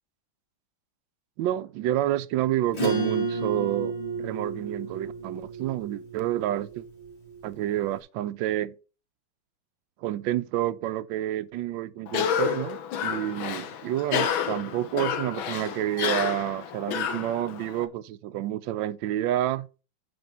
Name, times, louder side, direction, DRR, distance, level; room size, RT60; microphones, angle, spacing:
voice 1, 1.4-6.8 7.4-8.7 10.0-19.7, right 13 dB, 75° right, 1.3 m, -29 dB
Acoustic guitar / Strum, 2.7-7.7, right 3 dB, 70° left, 5.7 m, -32 dB
Cough, 12.1-17.8, left 8 dB, 85° left, 1.7 m, -30 dB
7.9 x 6.0 x 5.2 m
omnidirectional pair, 2.2 m